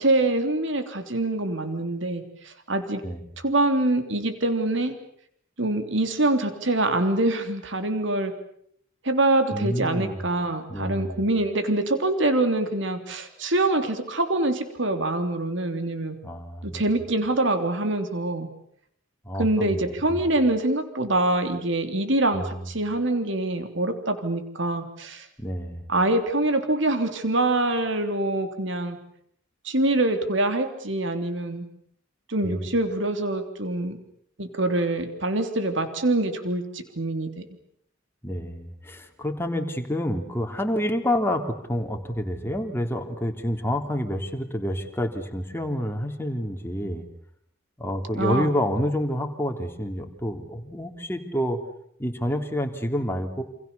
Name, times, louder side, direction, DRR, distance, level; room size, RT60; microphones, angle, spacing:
voice 1, 0.0-3.0 3.4-4.9 5.6-8.3 9.0-16.2 16.6-18.5 19.4-25.3 25.9-29.0 29.6-31.7 32.3-34.0 34.4-37.4 48.2-48.5, right 2 dB, 65° right, 8 dB, 3.3 m, -25 dB
voice 2, 9.5-10.2 10.7-11.2 16.2-16.8 19.2-19.8 20.1-20.2 22.3-22.6 25.4-25.8 32.4-32.7 38.2-47.0 47.8-51.6 52.0-53.4, equal, 10° left, 4 dB, 3.1 m, -28 dB
28.5 x 27.0 x 7.0 m, 0.67 s
head